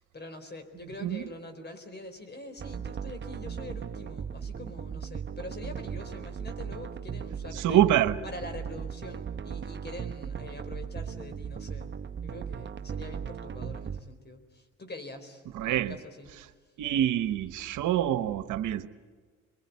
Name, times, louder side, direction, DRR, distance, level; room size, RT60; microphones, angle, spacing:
voice 1, 0.0-7.8 8.2-16.3, left 2 dB, 35° left, 8 dB, 4.5 m, -44 dB
sound 1, 2.6-14.0, right 7 dB, 40° right, 0.9 m, -37 dB
voice 2, 7.5-8.2 15.5-15.9 16.8-18.9, right 12 dB, 80° right, 12 dB, 1.2 m, -26 dB
26.5 x 21.5 x 9.5 m, 1.5 s
cardioid pair, 90°, 30 cm